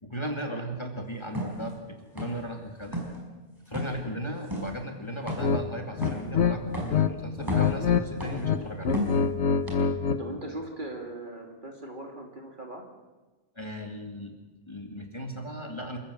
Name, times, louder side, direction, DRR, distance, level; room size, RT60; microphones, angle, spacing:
voice 1, 0.0-3.1 3.7-9.0 13.6-14.3 14.7-16.0, right 1 dB, 25° left, 3 dB, 2.5 m, -36 dB
sound 1, 1.3-1.6 2.2-2.5 2.8-3.2 3.7-4.0 4.5-4.7 5.3-5.6 6.0-6.3 6.7-7.0 7.4-7.8 8.2-8.5 8.9-9.3 9.7-9.8, left 1 dB, 20° right, 5.1 m, -32 dB
sound 2, 5.4-5.6 6.0-7.1 7.4-8.0 8.3-10.2, left 6 dB, 70° left, 1.4 m, -25 dB
voice 2, 8.6-9.1 10.2-12.8, right 1 dB, 45° right, 2 dB, 3.4 m, -40 dB
28.0 x 14.5 x 8.4 m, 1.2 s
omnidirectional pair, 1.2 m